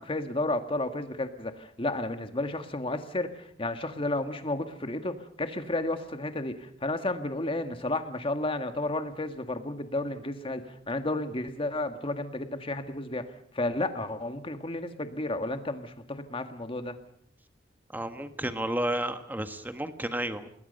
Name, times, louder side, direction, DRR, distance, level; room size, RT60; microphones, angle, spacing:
voice 1, 0.0-17.0, left 2 dB, 30° left, 7 dB, 1.8 m, -32 dB
voice 2, 17.9-20.5, right 1 dB, 10° right, 8 dB, 1.4 m, -32 dB
27.5 x 20.5 x 5.5 m, 0.68 s
head